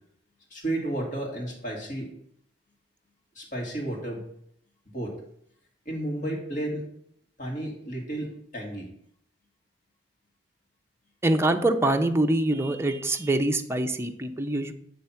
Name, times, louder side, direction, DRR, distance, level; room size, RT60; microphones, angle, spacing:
voice 1, 0.5-2.1 3.3-4.2 4.9-5.1 5.9-6.9 7.4-8.9, right 1 dB, 45° left, -2 dB, 2.3 m, -32 dB
voice 2, 11.2-14.7, right 1 dB, 15° right, 4 dB, 0.5 m, -24 dB
7.6 x 3.4 x 5.7 m, 0.68 s
head